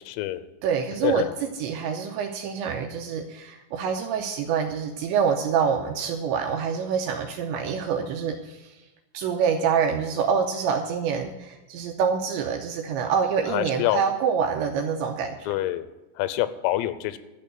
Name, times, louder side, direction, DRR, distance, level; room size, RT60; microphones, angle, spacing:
voice 1, 0.1-0.4 1.0-1.3 13.5-14.0 15.5-15.9 16.2-17.2, left 15 dB, 85° left, 13 dB, 3.4 m, -26 dB
voice 2, 0.6-8.7 9.1-15.5, right 6 dB, 85° right, 4 dB, 2.7 m, -26 dB
12.0 x 6.9 x 8.9 m, 1.1 s
omnidirectional pair, 6.0 m